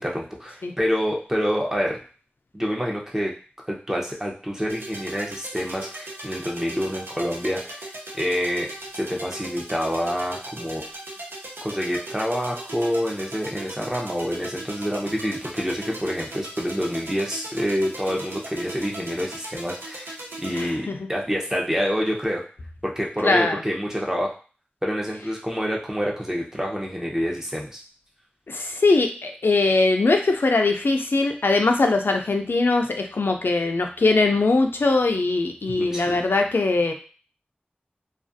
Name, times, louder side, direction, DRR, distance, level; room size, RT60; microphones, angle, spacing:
voice 1, 0.0-2.0 2.5-3.3 3.7-8.7 9.0-10.8 11.6-22.4 22.8-24.3 24.8-27.8 35.7-36.2, equal, 15° right, -2 dB, 0.6 m, -27 dB
sound 1, 4.7-20.7, right 1 dB, 90° right, 0.6 m, -38 dB
voice 2, 20.5-21.1 23.2-23.6 28.5-36.9, left 3 dB, 75° left, 4 dB, 0.3 m, -21 dB
2.4 x 2.3 x 2.5 m, 0.38 s
wide cardioid pair, 60°, 4 cm